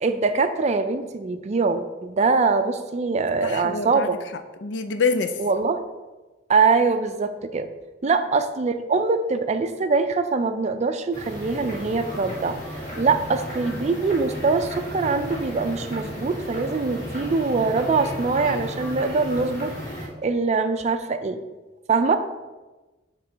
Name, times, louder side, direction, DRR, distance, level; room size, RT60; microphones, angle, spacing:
voice 1, 0.0-4.2 5.4-5.8 6.5-7.7 8.0-12.6 13.0-21.4 21.9-22.2, right 4 dB, 40° right, 9 dB, 0.4 m, -23 dB
voice 2, 3.4-4.1 4.6-5.3 8.0-8.1, left 4 dB, 75° left, 9 dB, 0.5 m, -25 dB
sound 1, 11.1-20.1, equal, 45° left, 2.1 m, -34 dB
7.0 x 3.1 x 5.0 m, 1.2 s
head